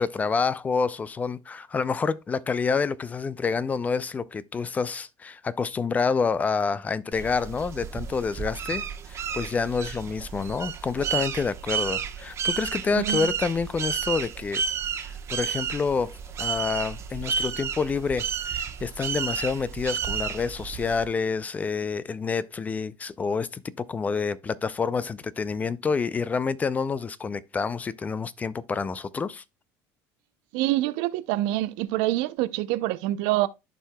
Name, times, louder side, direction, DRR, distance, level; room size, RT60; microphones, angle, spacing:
voice 1, 0.0-14.6 15.0-29.4, left 5 dB, 20° left, 0.3 m, -28 dB
sound 1, 7.1-21.1, right 7 dB, 35° right, 1.0 m, -32 dB
voice 2, 12.9-13.3 30.5-33.5, right 16 dB, 75° right, 0.5 m, -26 dB
13.5 x 4.6 x 2.2 m
cardioid pair, 130°, 8 cm